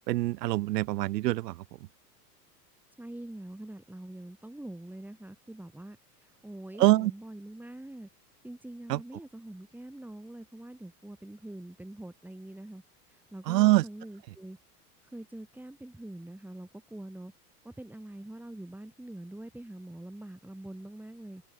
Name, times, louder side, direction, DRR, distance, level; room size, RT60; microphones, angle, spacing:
voice 1, 0.1-1.6 6.8-7.1 8.9-9.0 13.5-13.8, right 17 dB, 90° right, 0.6 m, -24 dB
voice 2, 3.0-8.1 8.4-12.8 13.1-14.6 15.1-17.3 17.6-21.4, right 1 dB, 5° right, 3.0 m, -44 dB
hypercardioid pair, 105°, 47 cm